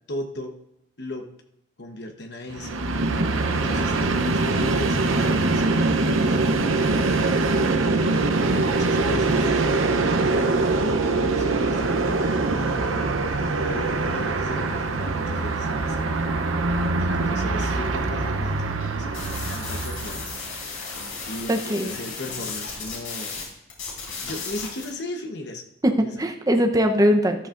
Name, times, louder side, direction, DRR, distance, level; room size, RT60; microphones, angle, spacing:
voice 1, 0.1-0.6 1.0-1.3 1.8-2.8 3.5-7.0 7.8-9.6 10.3-13.1 13.6-16.4 17.0-18.7 18.9-20.5 21.3-23.4 24.2-26.1, left 1 dB, 55° left, 5 dB, 1.1 m, -37 dB
Train, 2.5-20.6, right 3 dB, 85° right, 0.8 m, -23 dB
sound 1, 19.1-23.4 23.7-24.9, left 4 dB, 90° left, 4.0 m, -35 dB
voice 2, 21.5-21.9 25.8-27.5, equal, 20° right, 4 dB, 0.8 m, -21 dB
13.5 x 11.5 x 2.6 m, 0.79 s
head